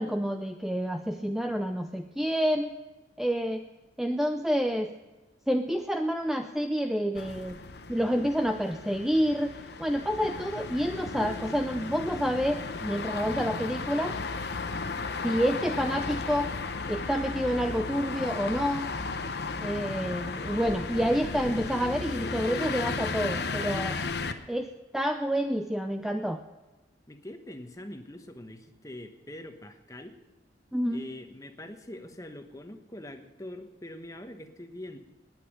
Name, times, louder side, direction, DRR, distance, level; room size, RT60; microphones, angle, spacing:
voice 1, 0.0-2.8 3.2-3.6 4.0-4.9 5.5-7.6 7.9-9.5 9.8-14.2 15.2-16.5 16.9-18.9 19.6-24.0 24.5-26.4 30.7-31.0, equal, ahead, 5 dB, 0.5 m, -28 dB
sound 1, 7.1-24.3, left 4 dB, 60° left, 0.9 m, -35 dB
voice 2, 27.1-30.2 30.9-35.0, left 1 dB, 20° left, 7 dB, 1.1 m, -43 dB
19.0 x 9.3 x 5.2 m, 1.1 s
head